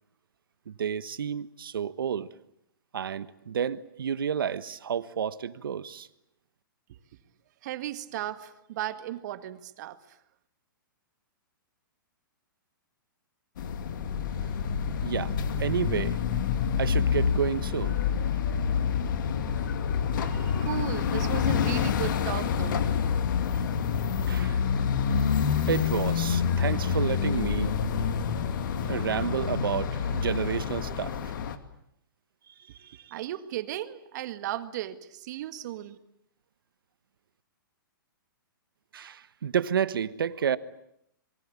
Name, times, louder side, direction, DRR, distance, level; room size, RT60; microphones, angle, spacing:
voice 1, 0.7-2.3 2.9-6.1 15.0-16.2 16.8-18.0 24.3-24.6 25.7-27.7 28.9-31.3 32.8-33.0 38.9-40.6, right 8 dB, 80° right, 1.3 m, -30 dB
voice 2, 7.6-10.2 20.2-22.9 32.7-36.0, right 13 dB, 55° right, 1.9 m, -36 dB
sound 1, 13.6-31.6, left 7 dB, 65° left, 2.4 m, -27 dB
27.0 x 23.0 x 8.6 m
hypercardioid pair, 135°, 12 cm